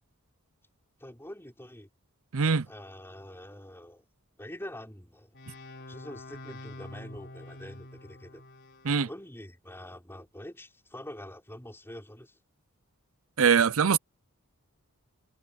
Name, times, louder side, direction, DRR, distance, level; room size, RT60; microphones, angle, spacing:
voice 1, 1.0-1.9 2.7-4.0 4.4-5.3 5.9-8.4 9.0-12.4, left 1 dB, 10° left, 4.9 m, -45 dB
voice 2, 2.3-2.7 8.8-9.1 13.4-14.0, right 6 dB, 65° right, 0.6 m, -22 dB
sound 1, 5.3-9.0, left 1 dB, 50° left, 4.1 m, -46 dB
head